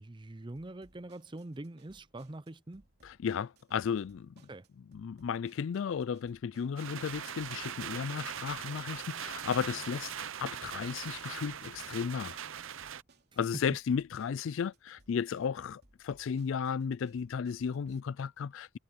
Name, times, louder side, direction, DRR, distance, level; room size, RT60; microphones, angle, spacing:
voice 1, 0.0-2.8 4.5-4.7 13.5-13.6, right 1 dB, 20° right, 0.5 m, -44 dB
sound 1, 0.6-18.0, right 2 dB, 50° right, 3.2 m, -66 dB
voice 2, 3.0-4.3 4.9-12.4 13.4-18.8, left 6 dB, 65° left, 0.3 m, -34 dB
sound 2, 6.8-13.0, right 8 dB, 65° right, 0.7 m, -41 dB
head